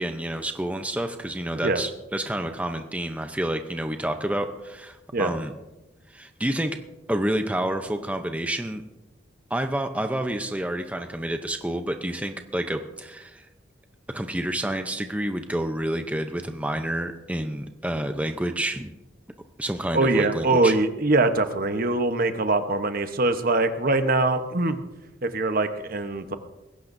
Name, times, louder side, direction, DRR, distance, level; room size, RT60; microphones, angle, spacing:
voice 1, 0.0-5.5 6.1-6.8 7.1-8.8 9.5-13.5 14.1-18.9 19.6-20.7, right 1 dB, 10° right, 6 dB, 0.7 m, -29 dB
voice 2, 19.9-24.8 25.2-26.3, right 2 dB, 50° right, 8 dB, 1.0 m, -23 dB
20.0 x 16.5 x 2.7 m, 1.0 s
head